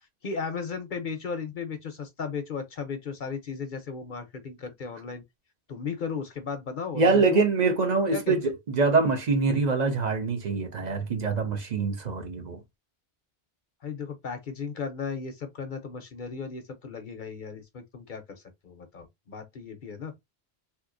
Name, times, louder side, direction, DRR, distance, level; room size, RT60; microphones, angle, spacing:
voice 1, 0.2-5.2 5.7-7.5 8.1-8.3 13.8-20.1, left 5 dB, 55° left, 0.7 m, -35 dB
voice 2, 6.9-12.6, right 4 dB, 45° right, 0.8 m, -24 dB
3.4 x 2.9 x 2.4 m
omnidirectional pair, 1.1 m